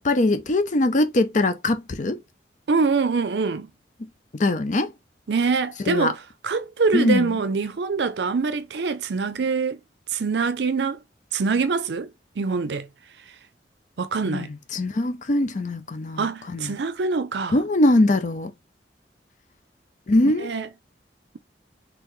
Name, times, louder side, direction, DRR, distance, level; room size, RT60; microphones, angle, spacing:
voice 1, 0.0-2.2 4.3-4.9 5.8-6.1 6.9-7.3 14.3-16.7 17.5-18.5 20.1-20.6, left 2 dB, 45° left, 0.6 m, -22 dB
voice 2, 2.7-3.7 5.3-6.1 6.4-9.8 10.1-11.0 11.3-12.1 12.4-12.9 14.0-14.5 16.2-17.6 20.4-20.7, right 4 dB, 70° right, 0.5 m, -24 dB
3.8 x 3.0 x 3.1 m
head